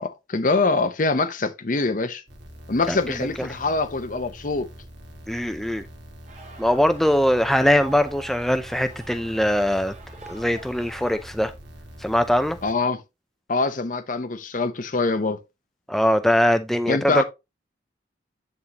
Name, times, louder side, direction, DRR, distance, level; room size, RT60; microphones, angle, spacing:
voice 1, 0.0-2.2 2.7-4.7 12.6-13.0 13.5-15.4 16.9-17.2, left 3 dB, 45° left, 0.7 m, -24 dB
sound 1, 2.3-12.7, equal, 75° right, 2.0 m, -44 dB
voice 2, 5.3-5.9 6.6-9.9 10.3-11.5 12.0-12.6 15.9-17.2, equal, ahead, 0.5 m, -21 dB
sound 2, 6.3-11.6, right 3 dB, 35° right, 1.8 m, -46 dB
9.5 x 3.7 x 2.9 m
head